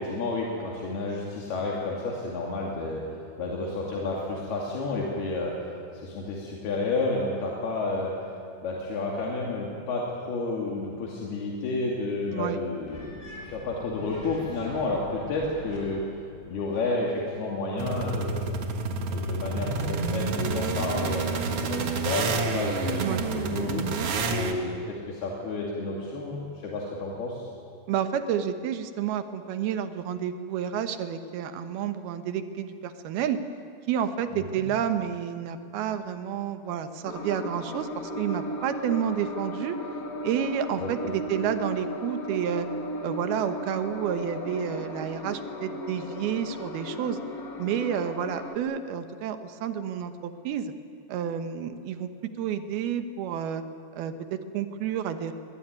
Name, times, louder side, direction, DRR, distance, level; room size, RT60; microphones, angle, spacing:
voice 1, 0.0-3.0 3.4-8.1 8.6-16.0 16.5-18.6 19.1-23.8 24.2-27.5 34.3-34.6 40.8-40.9, left 2 dB, 75° left, -2 dB, 4.5 m, -31 dB
sound 1, 12.9-16.9, left 1 dB, 20° left, 7.0 m, -43 dB
sound 2, 17.8-24.5, right 3 dB, 50° right, 1.9 m, -29 dB
voice 2, 27.9-33.4 33.9-39.8 40.2-42.7 43.0-47.2 47.6-50.7 51.1-52.1 52.4-53.6 53.9-55.3, right 8 dB, 80° right, 9 dB, 3.1 m, -30 dB
sound 3, 37.0-48.5, left 1 dB, 35° left, 1.6 m, -36 dB
23.0 x 21.5 x 9.6 m, 2.4 s
omnidirectional pair, 4.5 m